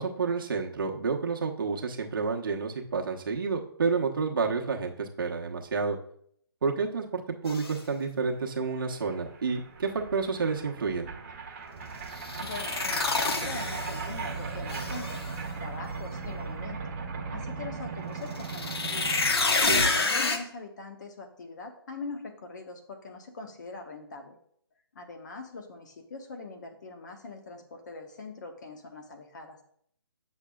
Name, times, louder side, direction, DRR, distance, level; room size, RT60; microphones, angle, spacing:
voice 1, 0.0-6.0 6.6-11.1 19.7-19.8, right 4 dB, 55° right, 1 dB, 1.0 m, -30 dB
sound 1, 7.5-7.7 12.2-14.2 14.7-15.3 18.4-20.4, left 3 dB, 70° left, 1.0 m, -28 dB
sound 2, 8.5-8.6 8.7-19.6, right 4 dB, 35° right, 1.3 m, -38 dB
voice 2, 12.4-15.2 15.6-16.9 17.3-19.1 19.7-24.4 24.9-29.6, left 3 dB, 45° left, 4 dB, 1.1 m, -42 dB
8.5 x 6.4 x 2.4 m, 0.66 s
hypercardioid pair, 160°, 13 cm